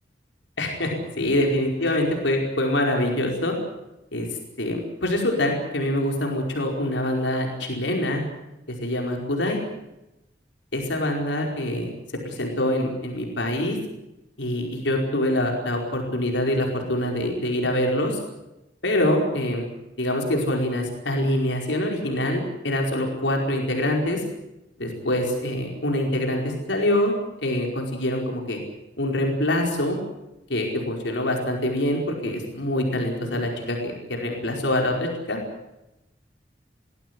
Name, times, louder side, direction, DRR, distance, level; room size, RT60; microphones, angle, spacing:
voice 1, 0.6-3.5 4.1-4.3 4.6-8.2 8.7-9.6 10.7-11.9 12.2-13.8 14.4-18.2 18.8-19.6 20.0-24.2 24.8-27.1 27.4-28.6 29.0-30.0 30.5-35.4, left 1 dB, 85° left, 1 dB, 4.9 m, -25 dB
21.5 x 16.5 x 9.7 m, 0.94 s
head